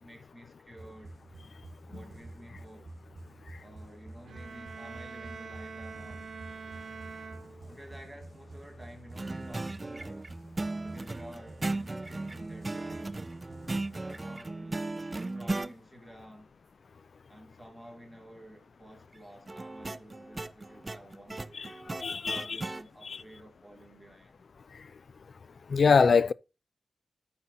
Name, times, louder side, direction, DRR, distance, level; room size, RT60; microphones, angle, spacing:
voice 1, 0.0-1.2 1.8-2.9 3.6-6.3 7.7-10.3 10.8-13.3 14.0-14.8 15.2-16.5 17.3-21.7 22.2-24.4, equal, 5° left, 2.6 m, -51 dB
sound 1, 0.8-14.7, right 2 dB, 40° right, 2.1 m, -49 dB
sound 2, 4.2-8.1, right 5 dB, 65° right, 0.8 m, -45 dB
sound 3, 9.2-15.7 19.5-22.8, right 2 dB, 25° right, 0.4 m, -36 dB
voice 2, 22.0-22.6 25.7-26.3, left 5 dB, 55° left, 0.4 m, -23 dB
8.8 x 5.8 x 3.9 m
wide cardioid pair, 135°, 0 cm